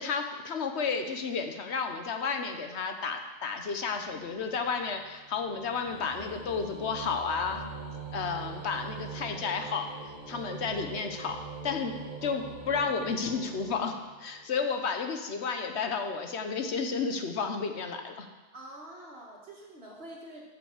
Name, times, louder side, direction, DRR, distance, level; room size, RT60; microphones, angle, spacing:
voice 1, 0.0-7.6 8.1-11.4 11.6-18.3, left 5 dB, 90° left, 5 dB, 1.2 m, -32 dB
sound 1, 3.6-14.5, right 4 dB, 35° right, 1.7 m, -43 dB
voice 2, 18.5-20.4, right 1 dB, 70° right, -3 dB, 1.9 m, -46 dB
8.7 x 5.8 x 7.3 m, 1.2 s
omnidirectional pair, 1.1 m